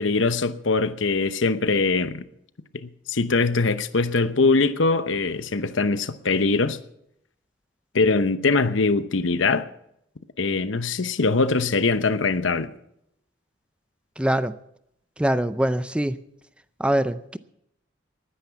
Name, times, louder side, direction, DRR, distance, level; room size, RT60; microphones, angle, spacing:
voice 1, 0.0-2.2 2.8-6.8 7.9-9.7 10.4-12.7, left 3 dB, 90° left, 0.9 m, -22 dB
voice 2, 14.2-14.5 15.2-16.2 16.8-17.4, right 1 dB, 5° right, 0.5 m, -23 dB
19.0 x 10.0 x 5.8 m
head